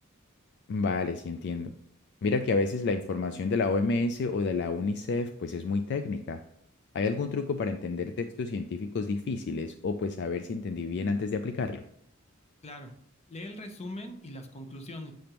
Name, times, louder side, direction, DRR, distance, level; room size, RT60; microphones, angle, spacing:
voice 1, 0.7-1.7 2.2-6.4 6.9-11.8, left 4 dB, 55° left, 8 dB, 0.3 m, -30 dB
voice 2, 13.3-15.1, left 1 dB, 30° left, 6 dB, 0.8 m, -41 dB
7.7 x 5.1 x 2.9 m, 0.72 s
head